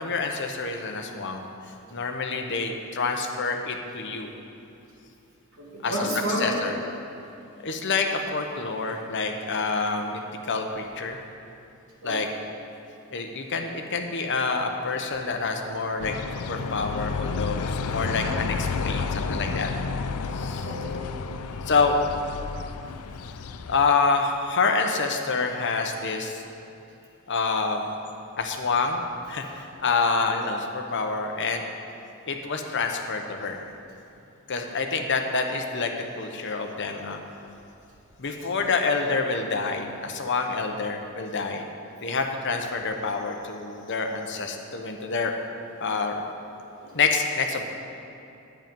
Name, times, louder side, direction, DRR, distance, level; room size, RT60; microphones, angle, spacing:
voice 1, 0.0-1.5 1.9-4.3 5.8-5.9 6.4-6.7 7.6-11.2 12.0-12.3 13.1-16.1 16.5-19.7 20.3-20.7 21.7-22.0 23.7-26.4 27.3-27.8 28.4-29.0 29.3-31.6 32.3-33.6 34.5-37.2 38.2-41.7 42.0-45.3 45.8-46.2 46.9-47.6, left 4 dB, 55° left, 4 dB, 0.9 m, -27 dB
voice 2, 5.5-6.7 12.0-12.2 17.8-18.1 18.9-19.2 20.6-21.7 22.8-23.2 38.2-38.5 46.8-47.0, right 1 dB, 90° right, -5 dB, 2.7 m, -33 dB
sound 1, 16.0-23.9, left 4 dB, 80° left, 0.4 m, -31 dB
10.5 x 9.1 x 5.3 m, 2.7 s
head